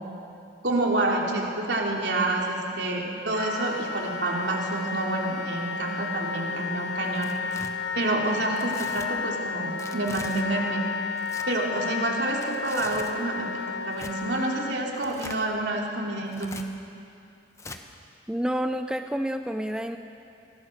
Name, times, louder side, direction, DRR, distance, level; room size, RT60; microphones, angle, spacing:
voice 1, 0.6-7.3 7.9-10.8 11.5-16.5, right 2 dB, 75° right, -1 dB, 3.1 m, -28 dB
Wind instrument woodwind instrument, 3.3-14.8, left 5 dB, 70° left, 0.9 m, -32 dB
Tearing, 7.0-7.7 8.6-9.1 9.8-10.4 11.1-11.5 12.3-13.2 13.9-14.1 14.9-15.4 16.3-16.6 17.6-17.8, left 3 dB, 15° left, 0.9 m, -42 dB
voice 2, 18.3-20.0, equal, 5° right, 6 dB, 0.5 m, -29 dB
23.5 x 17.5 x 6.6 m, 2.6 s
head